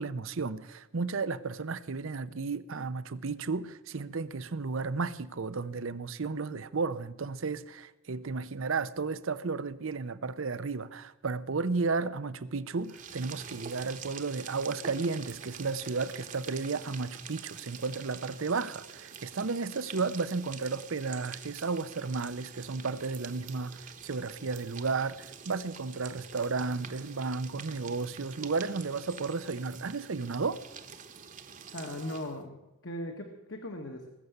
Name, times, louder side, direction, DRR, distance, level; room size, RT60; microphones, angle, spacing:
voice 1, 0.0-30.6, right 4 dB, 60° right, 0.6 m, -33 dB
sound 1, 12.8-32.4, right 6 dB, 35° right, 1.0 m, -47 dB
voice 2, 31.7-34.1, left 1 dB, 55° left, 1.5 m, -39 dB
20.0 x 7.0 x 7.9 m
head